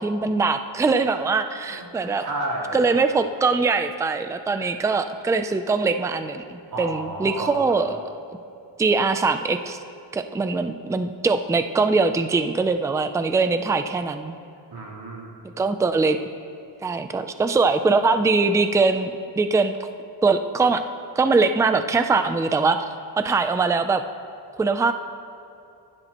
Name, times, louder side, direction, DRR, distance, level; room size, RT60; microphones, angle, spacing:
voice 1, 0.0-2.2 2.7-8.2 8.8-9.8 10.1-14.3 15.6-16.2 16.8-19.8 20.2-20.8 21.2-22.9 23.2-24.0 24.6-24.9, right 4 dB, 10° right, 9 dB, 0.4 m, -22 dB
voice 2, 1.7-2.8 4.5-4.7 6.7-7.8 14.7-15.3, right 1 dB, 55° right, -4 dB, 3.6 m, -32 dB
26.0 x 12.0 x 3.0 m, 2.7 s
wide cardioid pair, 175°, 44 cm